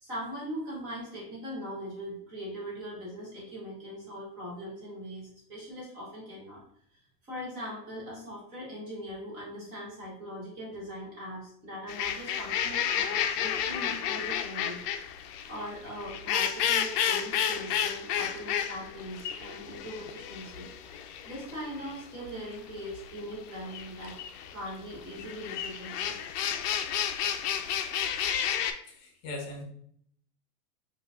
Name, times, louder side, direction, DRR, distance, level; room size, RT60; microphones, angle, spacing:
voice 1, 0.0-6.6 7.2-14.8 15.5-20.7 21.2-24.2 24.5-26.2, equal, 10° right, -6 dB, 0.4 m, -40 dB
sound 1, 11.9-28.7, left 9 dB, 70° left, 0.5 m, -32 dB
voice 2, 28.9-29.6, left 2 dB, 30° left, -1 dB, 0.7 m, -39 dB
4.3 x 2.4 x 2.3 m, 0.64 s
supercardioid pair, 160°, 49 cm